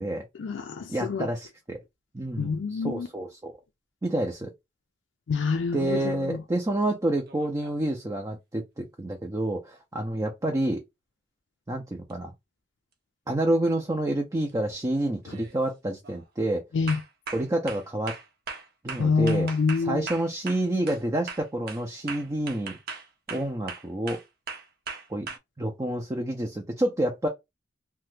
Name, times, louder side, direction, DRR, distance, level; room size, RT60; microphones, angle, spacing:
voice 1, 0.4-1.3 2.4-3.1 5.3-6.4 16.7-17.0 19.0-20.0, left 4 dB, 75° left, 0.4 m, -26 dB
voice 2, 0.9-1.8 2.1-3.5 4.0-4.5 5.7-10.8 11.7-12.3 13.3-16.6 17.3-18.1 18.8-19.5 19.8-22.8 23.3-24.2 25.1-25.3 25.6-27.3, right 1 dB, 20° right, 0.5 m, -28 dB
sound 1, 7.2-7.9 12.1-12.2 13.7-14.0 14.4-14.8 15.2-15.6 16.0-16.3 16.9-21.0 21.3-25.4, right 5 dB, 55° right, 0.7 m, -39 dB
2.8 x 2.2 x 3.2 m
head